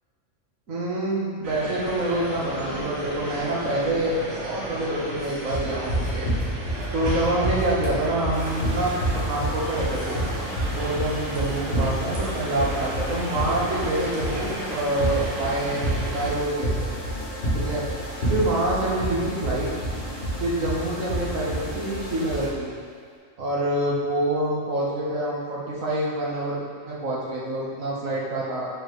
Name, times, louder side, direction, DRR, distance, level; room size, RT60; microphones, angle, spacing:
voice 1, 0.7-6.3 6.9-10.2 10.7-16.9 17.5-17.9 18.3-19.7 20.4-22.7 23.4-28.7, right 1 dB, 80° right, -5 dB, 1.7 m, -26 dB
sound 1, 1.4-16.3, right 1 dB, 65° right, 1.5 m, -34 dB
sound 2, 5.5-22.5, right 1 dB, 50° left, 2.1 m, -28 dB
sound 3, 8.3-22.5, left 1 dB, 30° left, 1.3 m, -37 dB
10.0 x 4.5 x 3.2 m, 2.1 s
omnidirectional pair, 1.4 m